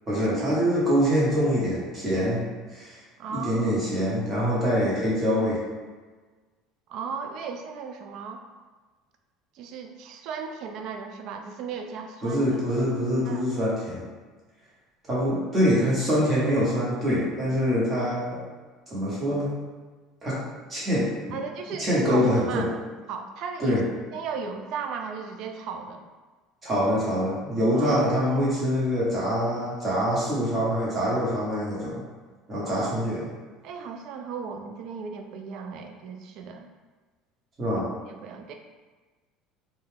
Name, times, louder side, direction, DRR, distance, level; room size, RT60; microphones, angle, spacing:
voice 1, 0.1-2.4 2.7-3.0 3.3-5.6 12.2-14.0 15.1-18.4 18.9-19.5 20.2-20.4 20.7-21.4 21.8-22.7 23.6-23.8 26.6-32.0 32.5-33.2 37.6-37.9, equal, 25° right, -7 dB, 1.1 m, -24 dB
voice 2, 3.2-3.7 6.9-8.4 9.5-12.4 13.2-13.5 21.3-22.7 23.1-23.8 24.1-26.1 27.7-28.4 32.7-32.9 33.6-36.7 38.1-38.5, right 6 dB, 60° right, 5 dB, 0.3 m, -36 dB
2.3 x 2.2 x 3.2 m, 1.3 s
cardioid pair, 125°, 0 cm